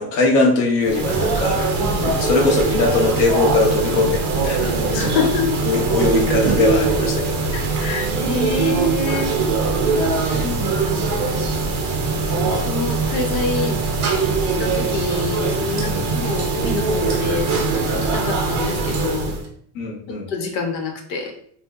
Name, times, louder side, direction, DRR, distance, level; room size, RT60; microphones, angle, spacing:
voice 1, 0.0-1.6 2.0-5.3 5.6-7.8 8.4-8.6 10.3-10.5 15.8-16.1 19.7-20.3, left 3 dB, 40° left, -1 dB, 0.6 m, -21 dB
sound 1, 0.8-19.5, right 4 dB, 35° right, 0.5 m, -21 dB
voice 2, 4.9-5.6 7.5-9.3 10.3-11.2 12.4-13.8 14.6-17.5 17.9-19.4 20.3-21.3, left 4 dB, 80° left, 3 dB, 0.9 m, -26 dB
2.7 x 2.1 x 3.5 m, 0.62 s
supercardioid pair, 155°, 49 cm